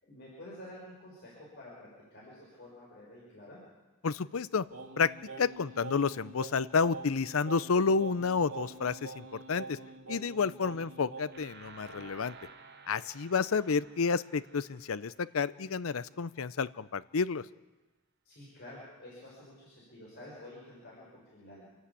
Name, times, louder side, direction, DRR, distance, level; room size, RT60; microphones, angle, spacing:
voice 1, 0.0-3.6 10.6-10.8 18.2-21.7, left 1 dB, 50° left, -5 dB, 6.1 m, -50 dB
voice 2, 4.0-4.7 5.0-5.1 5.4-9.8 10.1-12.3 12.9-17.4, left 5 dB, 75° left, 17 dB, 0.6 m, -30 dB
Singing, 4.7-11.5, right 4 dB, 85° right, 2.7 m, -45 dB
sound 1, 11.3-16.2, right 4 dB, 50° right, 1.1 m, -54 dB
28.0 x 11.5 x 8.5 m, 1.1 s
head